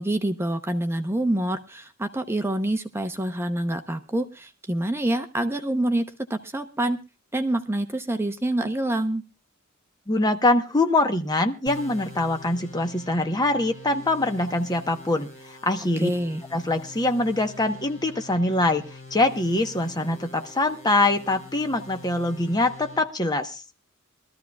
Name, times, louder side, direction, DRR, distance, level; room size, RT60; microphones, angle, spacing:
voice 1, 0.0-7.0 7.3-9.2 16.0-16.4, right 1 dB, 10° right, 7 dB, 0.8 m, -26 dB
voice 2, 10.1-16.1 16.5-18.8 19.1-23.6, left 2 dB, 20° left, 6 dB, 1.1 m, -24 dB
sound 1, 11.7-23.0, left 3 dB, 35° left, 3.9 m, -44 dB
22.0 x 13.5 x 2.4 m, 0.31 s
head